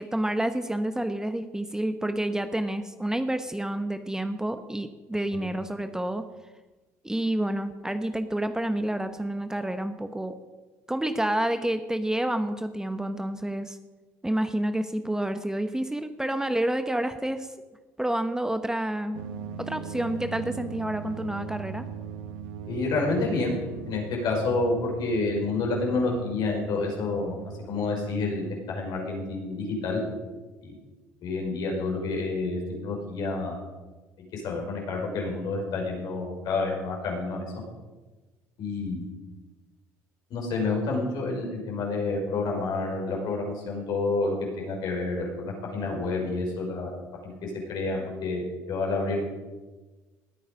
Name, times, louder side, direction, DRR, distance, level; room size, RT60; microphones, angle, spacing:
voice 1, 0.0-6.2 7.0-10.4 10.9-13.8 14.2-17.5 18.0-19.2 19.6-21.9, right 1 dB, 10° right, 9 dB, 1.0 m, -29 dB
sound 1, 19.1-28.6, right 6 dB, 80° right, 1.2 m, -40 dB
voice 2, 22.7-23.6 23.9-27.4 27.7-30.0 30.6-30.8 31.2-33.6 34.3-37.5 38.6-39.1 40.3-46.9 47.2-49.2, left 3 dB, 65° left, 0 dB, 5.3 m, -29 dB
19.5 x 9.2 x 5.2 m, 1.2 s
supercardioid pair, 70°, 8 cm